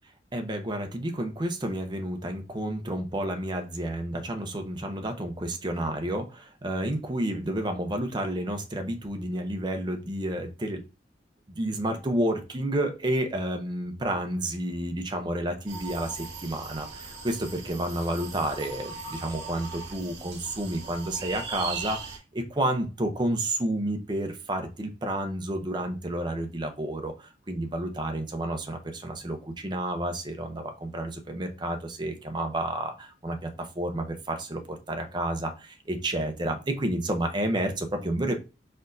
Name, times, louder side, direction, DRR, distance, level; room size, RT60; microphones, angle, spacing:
voice 1, 0.3-10.8 11.5-38.4, right 1 dB, 25° right, 5 dB, 0.6 m, -30 dB
sound 1, 15.7-22.2, right 4 dB, 65° right, 1.2 m, -39 dB
4.3 x 4.1 x 2.6 m, 0.30 s
head